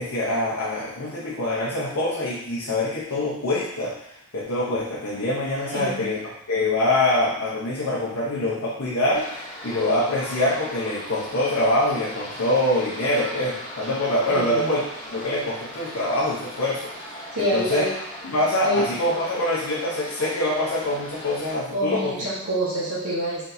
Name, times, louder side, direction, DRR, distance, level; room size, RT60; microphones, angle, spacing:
voice 1, 0.0-17.8 18.2-22.1, left 1 dB, 75° left, -7 dB, 0.8 m, -25 dB
voice 2, 5.7-6.1 14.3-14.7 17.3-17.9 18.6-18.8 21.7-23.4, equal, 80° right, -10 dB, 1.3 m, -26 dB
sound 1, 9.1-21.5, left 1 dB, 35° left, 1.0 m, -39 dB
4.1 x 3.5 x 2.7 m, 0.78 s
head